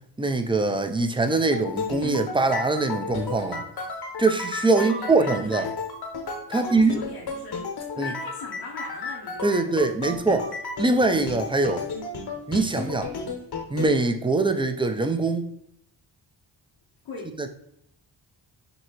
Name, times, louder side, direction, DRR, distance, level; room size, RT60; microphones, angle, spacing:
voice 1, 0.2-3.6 4.2-5.7 6.5-7.0 8.0-8.1 9.4-11.8 12.5-13.1 13.7-15.5 17.4-17.5, right 3 dB, 10° right, 0.4 m, -23 dB
sound 1, 1.4-13.9, left 4 dB, 55° left, 0.8 m, -33 dB
voice 2, 4.8-5.7 6.5-7.6 7.9-10.0 17.0-17.3, left 3 dB, 85° left, 1.0 m, -39 dB
5.3 x 2.7 x 2.9 m
cardioid pair, 70°, 45 cm